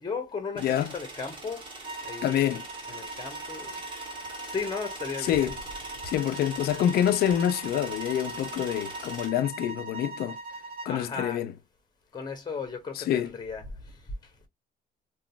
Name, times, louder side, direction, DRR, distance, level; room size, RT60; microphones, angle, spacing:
voice 1, 0.0-1.7 2.0-2.6 2.9-3.8 4.5-5.5 10.9-11.4 12.1-13.6 13.9-14.0, left 5 dB, 25° left, 1.1 m, -35 dB
voice 2, 0.6-0.9 2.2-2.7 5.2-5.6 6.0-10.4 10.9-11.5 12.9-13.3, left 10 dB, 65° left, 0.5 m, -26 dB
sound 1, 0.6-9.3, right 2 dB, 30° right, 1.7 m, -43 dB
sound 2, 1.8-11.0, right 3 dB, 60° right, 0.8 m, -40 dB
3.8 x 2.4 x 2.3 m
cardioid pair, 110°, 17 cm